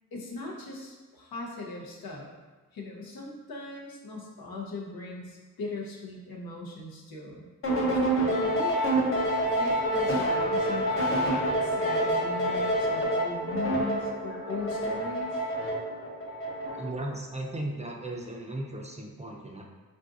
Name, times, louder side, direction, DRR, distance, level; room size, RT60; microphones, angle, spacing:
voice 1, 0.1-2.3 2.7-7.5 7.9-8.8 9.6-15.4, left 3 dB, 85° left, -2 dB, 0.7 m, -39 dB
sound 1, 7.6-17.0, right 1 dB, 40° left, 0.7 m, -27 dB
voice 2, 16.7-19.6, right 1 dB, 20° right, -1 dB, 0.4 m, -36 dB
3.8 x 2.6 x 2.4 m, 1.2 s
cardioid pair, 60°, 35 cm